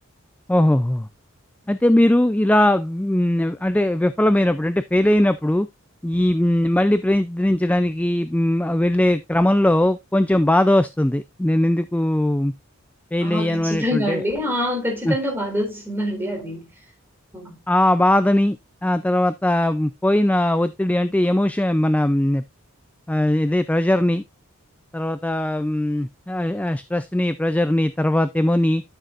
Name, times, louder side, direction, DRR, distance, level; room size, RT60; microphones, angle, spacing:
voice 1, 0.5-1.1 1.7-5.7 6.0-12.5 13.1-14.2 15.0-15.2 17.7-18.6 18.8-22.4 23.1-24.2 24.9-28.8, left 1 dB, 5° left, 0.4 m, -20 dB
voice 2, 13.2-16.7 17.3-17.6, left 1 dB, 10° right, 4.0 m, -25 dB
12.5 x 6.6 x 2.5 m
head